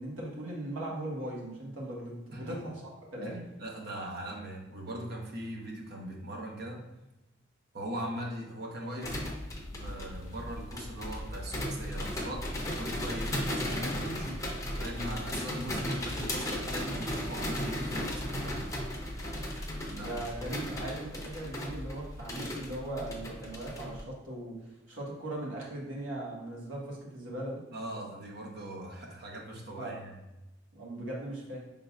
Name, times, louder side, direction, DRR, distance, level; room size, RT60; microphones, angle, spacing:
voice 1, 0.0-2.8 3.1-3.3 19.9-27.6 29.8-30.0 30.7-31.6, right 1 dB, 75° right, -4 dB, 1.4 m, -39 dB
voice 2, 3.2-6.8 7.7-9.2 9.7-18.6 19.9-20.1 27.7-30.2, right 1 dB, 55° right, -1 dB, 1.0 m, -40 dB
sound 1, 9.0-24.0, left 1 dB, 15° left, 0.8 m, -36 dB
5.6 x 3.8 x 2.3 m, 1.0 s
head